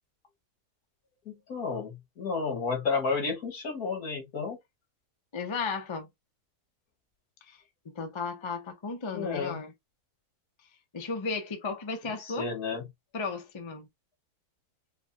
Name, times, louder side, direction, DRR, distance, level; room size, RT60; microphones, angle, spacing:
voice 1, 1.3-4.6 9.1-9.6 12.1-12.8, left 4 dB, 75° left, 1.9 m, -32 dB
voice 2, 5.3-6.1 7.5-7.6 7.8-9.7 10.9-12.5 13.1-13.9, left 4 dB, 35° left, 0.5 m, -34 dB
5.1 x 2.3 x 2.7 m
omnidirectional pair, 1.6 m